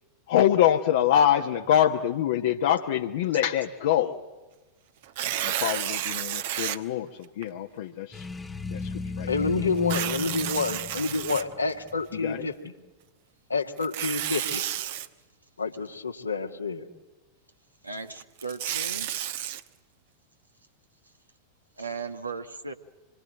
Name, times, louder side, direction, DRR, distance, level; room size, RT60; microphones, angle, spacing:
voice 1, 0.3-4.2 5.4-8.3 8.7-9.5 12.1-12.4, left 10 dB, 55° left, 4 dB, 1.2 m, -25 dB
Tearing, 5.0-6.8 7.4-7.5 9.8-11.9 13.8-15.1 18.2-19.6, right 12 dB, 55° right, 1.1 m, -31 dB
sound 1, 8.1-12.0, left 4 dB, 10° left, 0.9 m, -35 dB
voice 2, 9.3-12.7 13.5-14.6 15.6-16.9, left 4 dB, 80° left, 5 dB, 1.8 m, -28 dB
voice 3, 17.8-19.1 21.8-22.7, right 4 dB, 80° right, 6 dB, 1.4 m, -36 dB
26.0 x 23.0 x 8.8 m, 1.2 s
figure-of-eight pair, 90°, 0 cm